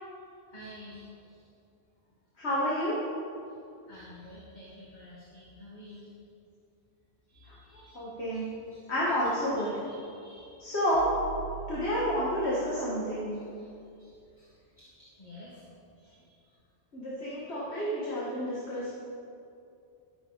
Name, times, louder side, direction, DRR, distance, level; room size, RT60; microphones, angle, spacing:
voice 1, 0.5-1.5 3.5-3.6 3.8-6.1 7.3-9.2 9.6-10.7 13.3-15.7 16.0-16.6 17.3-17.4 17.8-18.0 18.7-19.0, left 1 dB, 45° left, -6 dB, 1.9 m, -52 dB
voice 2, 2.4-3.0 7.5-8.4 8.9-9.7 10.6-11.1 11.7-13.4 16.9-19.0, equal, 85° left, -7 dB, 2.2 m, -30 dB
sound 1, 10.8-14.0, right 11 dB, 80° right, 1.6 m, -44 dB
13.0 x 11.0 x 4.1 m, 2.5 s
omnidirectional pair, 1.1 m